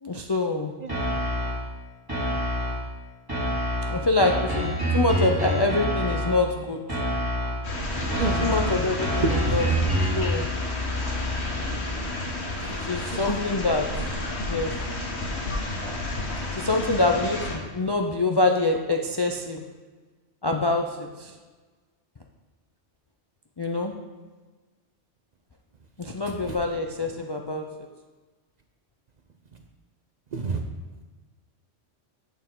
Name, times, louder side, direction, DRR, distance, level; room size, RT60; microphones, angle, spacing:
voice 1, 0.0-0.7 3.9-7.0 8.4-9.7 10.1-10.5 12.8-13.9 14.4-14.7 16.6-19.6 20.4-21.4 23.6-23.9 26.0-27.6, left 2 dB, 40° left, 2 dB, 0.3 m, -25 dB
sound 1, 0.9-1.7 2.1-2.9 3.3-6.5 6.9-7.7 8.1-10.3, equal, 20° right, 1.9 m, -27 dB
sound 2, 7.6-17.6, left 2 dB, 70° left, 1.5 m, -30 dB
voice 2, 8.0-8.5 9.2-9.6 13.1-13.3 30.3-30.6, right 4 dB, 50° right, 4 dB, 0.6 m, -28 dB
8.2 x 6.7 x 3.8 m, 1.3 s
omnidirectional pair, 1.2 m